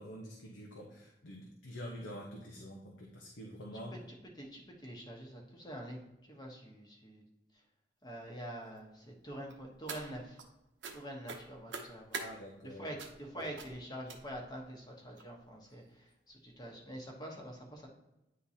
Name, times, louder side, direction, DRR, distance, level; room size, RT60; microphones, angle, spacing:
voice 1, 0.0-4.0 12.2-12.8, equal, 85° left, -1 dB, 0.9 m, -46 dB
voice 2, 4.1-7.2 8.0-10.4 10.9-12.2 12.6-17.9, right 1 dB, 20° left, 0 dB, 1.1 m, -46 dB
sound 1, 9.5-10.5 10.8-11.0 11.3-12.3 13.0-13.2 13.6-13.7 14.1-14.5 15.2-15.3 15.7-15.8 16.1-16.2, right 4 dB, 80° right, 0.8 m, -44 dB
9.6 x 3.8 x 2.8 m, 0.95 s
head